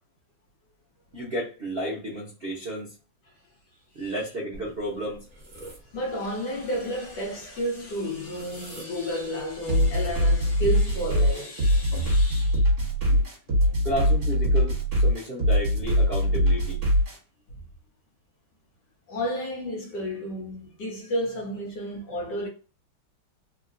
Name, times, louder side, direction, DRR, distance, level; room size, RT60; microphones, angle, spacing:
voice 1, 1.1-2.9 3.9-5.2 13.0-13.2 13.8-16.8, right 1 dB, 85° right, 0.5 m, -32 dB
sound 1, 4.5-9.8, right 1 dB, 30° right, 1.0 m, -49 dB
voice 2, 5.9-12.7 19.1-22.5, equal, 65° left, 1.3 m, -31 dB
sound 2, 9.7-17.2, equal, 50° right, 1.7 m, -22 dB
3.7 x 2.1 x 2.5 m
omnidirectional pair, 2.4 m